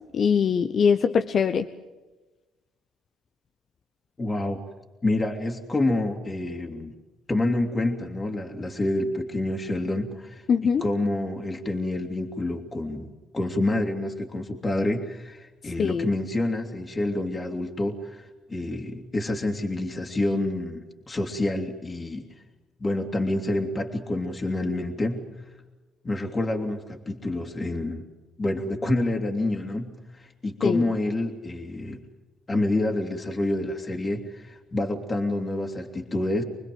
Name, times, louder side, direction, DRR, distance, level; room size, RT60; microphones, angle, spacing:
voice 1, 0.1-1.7 10.5-10.9 15.8-16.0 30.6-30.8, left 6 dB, 55° left, 9 dB, 1.0 m, -22 dB
voice 2, 4.2-4.6 5.0-6.9 7.3-22.2 22.8-25.3 26.0-28.0 28.4-32.0 32.5-36.4, left 2 dB, 30° left, 2 dB, 2.8 m, -28 dB
25.5 x 20.5 x 7.8 m, 1.2 s
supercardioid pair, 60°, 0 cm